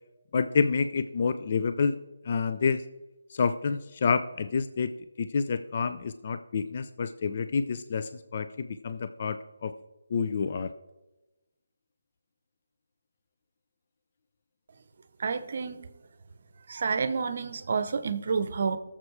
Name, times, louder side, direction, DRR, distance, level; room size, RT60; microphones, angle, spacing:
voice 1, 0.3-1.9 2.2-2.8 3.3-4.9 5.2-9.7 10.1-10.7, left 5 dB, 45° left, 11 dB, 0.5 m, -28 dB
voice 2, 15.2-15.9 16.7-18.8, right 5 dB, 50° right, 12 dB, 0.8 m, -29 dB
19.5 x 7.3 x 3.3 m, 1.0 s
figure-of-eight pair, 150°, 0 cm